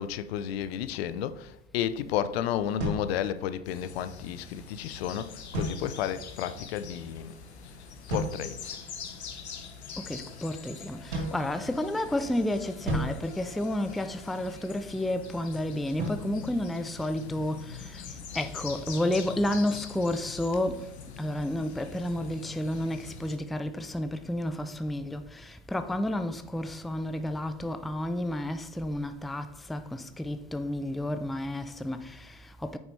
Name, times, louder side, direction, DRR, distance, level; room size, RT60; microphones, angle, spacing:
voice 1, 0.0-7.4 8.1-8.8, left 10 dB, 70° left, 0.7 m, -32 dB
sound 1, 2.8-3.9 5.5-6.3 8.1-8.8 11.1-12.2 12.9-14.3 16.0-17.5, right 1 dB, 85° right, 2.7 m, -36 dB
sound 2, 3.6-23.4, left 6 dB, 90° left, 1.1 m, -44 dB
voice 2, 10.1-18.0 18.3-20.9 21.2-32.8, left 1 dB, ahead, 0.4 m, -31 dB
8.9 x 6.4 x 3.3 m
hypercardioid pair, 85°, 32 cm